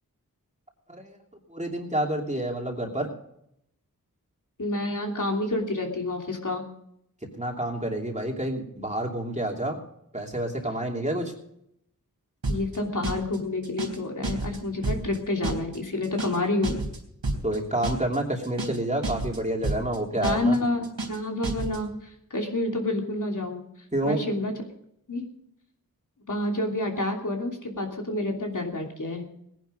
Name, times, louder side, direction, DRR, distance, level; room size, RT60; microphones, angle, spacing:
voice 1, 1.5-3.1 7.4-9.8 10.1-11.3 17.4-20.6 23.9-24.2, right 1 dB, 20° right, 1 dB, 2.9 m, -28 dB
voice 2, 4.6-6.6 12.5-16.8 20.2-23.6 24.0-24.5 25.1-25.3 26.3-29.2, left 2 dB, 55° left, 1 dB, 3.0 m, -28 dB
sound 1, 12.4-12.8 13.0-13.4 13.6-14.0 14.2-14.6 14.8-15.2 15.4-15.8 16.0-16.4 16.6-17.0 17.2-17.6 17.8-18.2 18.4-18.8 19.0-19.4 19.6-20.0 20.2-20.6 20.8-21.2 21.4-21.8, right 2 dB, 80° right, 3.6 m, -30 dB
18.5 x 10.5 x 5.1 m, 0.75 s
wide cardioid pair, 65°, 36 cm